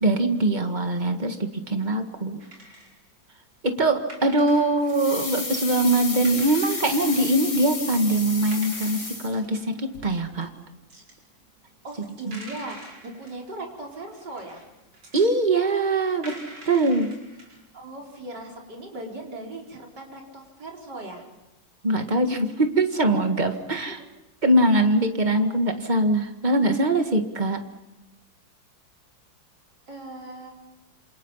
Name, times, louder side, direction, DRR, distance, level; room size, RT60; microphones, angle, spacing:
voice 1, 0.0-2.4 3.6-10.5 12.3-12.4 15.1-16.3 16.7-17.1 21.8-24.0 24.4-27.6, right 1 dB, 25° right, 6 dB, 1.9 m, -22 dB
sound 1, 2.4-3.0 3.8-3.9 4.1-5.5 5.8-5.9 6.2-7.5 8.0-8.1 8.5-9.1 10.1-10.4 10.9-11.6 11.8-13.4 14.1-15.3 15.6-15.7 16.2-17.7, right 1 dB, 90° right, 5.9 m, -45 dB
sound 2, 4.9-9.7 9.9-10.0, left 3 dB, 75° left, 5.2 m, -32 dB
voice 2, 11.8-14.7 17.7-21.2 23.9-24.1 29.9-30.5, right 2 dB, 60° right, 0 dB, 5.1 m, -39 dB
28.0 x 27.0 x 5.7 m, 0.98 s
omnidirectional pair, 2.1 m